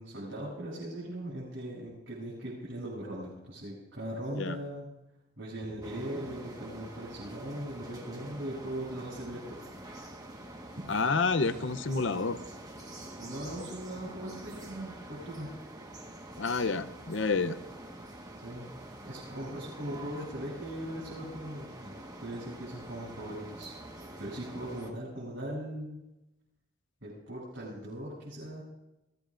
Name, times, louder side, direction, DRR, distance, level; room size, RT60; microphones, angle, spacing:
voice 1, 0.0-4.9 5.4-9.6 11.5-11.7 13.2-15.5 18.4-18.7 19.0-21.9 22.2-23.7 24.2-26.0 27.0-28.6, right 1 dB, 65° right, -8 dB, 7.8 m, -39 dB
sound 1, 5.8-24.9, right 1 dB, 20° right, 1.4 m, -46 dB
voice 2, 10.9-12.4 16.4-17.6, left 4 dB, 60° left, 11 dB, 0.8 m, -29 dB
24.0 x 17.5 x 2.6 m, 0.92 s
head